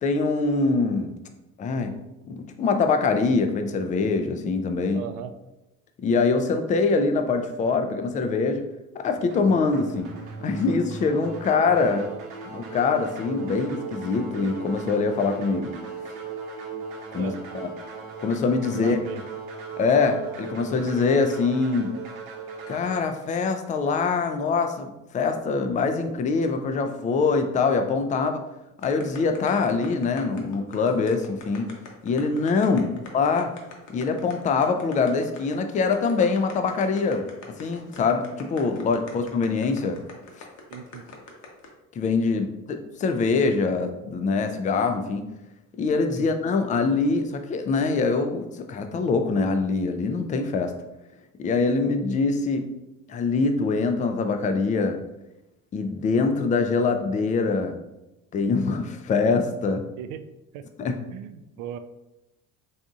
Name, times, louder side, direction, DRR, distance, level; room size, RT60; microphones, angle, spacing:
voice 1, 0.0-1.2 1.6-2.0 2.3-5.0 6.0-8.6 8.9-10.1 10.4-12.1 12.5-15.8 17.1-17.7 18.2-19.0 19.8-21.9 22.7-28.4 28.8-31.7 32.0-32.9 33.1-33.5 33.9-40.0 42.0-45.2 45.8-50.7 51.4-52.7 53.1-55.0 55.7-57.7 58.3-59.8 60.8-61.0, left 4 dB, 20° left, 7 dB, 0.4 m, -24 dB
voice 2, 4.9-5.3 17.2-17.6 18.7-19.3 32.7-33.0 40.7-41.1 46.2-46.3 60.0-60.2 60.5-60.6 61.1-61.8, right 9 dB, 50° right, 9 dB, 0.5 m, -37 dB
sound 1, 9.3-23.0, right 5 dB, 70° right, 0.9 m, -38 dB
sound 2, 28.8-41.7, left 4 dB, 45° left, 0.9 m, -43 dB
4.1 x 3.4 x 2.4 m, 0.95 s
figure-of-eight pair, 55°, 41 cm